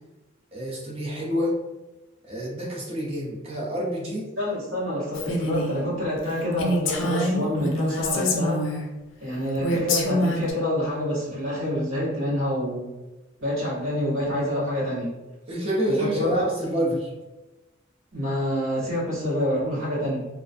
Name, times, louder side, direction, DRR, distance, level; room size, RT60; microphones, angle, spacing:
voice 1, 0.5-1.6 2.2-4.3 15.5-17.1, right 1 dB, 30° right, -5 dB, 0.6 m, -27 dB
voice 2, 4.4-8.6 9.2-12.9 13.4-15.1 15.9-16.3 18.1-20.3, left 1 dB, 80° right, -9 dB, 1.1 m, -27 dB
Female speech woman speaking, 5.1-5.8 6.2-6.3 6.6-8.9 9.6-10.5, left 1 dB, 65° left, 0.4 m, -26 dB
2.3 x 2.1 x 2.5 m, 1.1 s
head